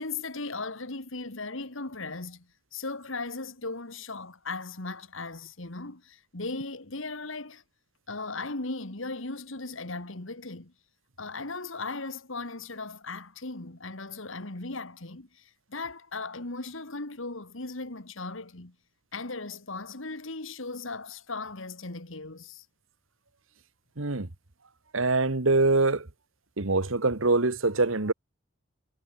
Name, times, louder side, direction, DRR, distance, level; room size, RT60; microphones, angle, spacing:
voice 1, 0.0-7.6 8.1-10.7 11.2-18.8 19.1-22.7, left 3 dB, 70° left, 2.3 m, -37 dB
voice 2, 24.0-24.3 24.9-26.1 26.6-28.1, right 3 dB, 75° right, 1.7 m, -24 dB
head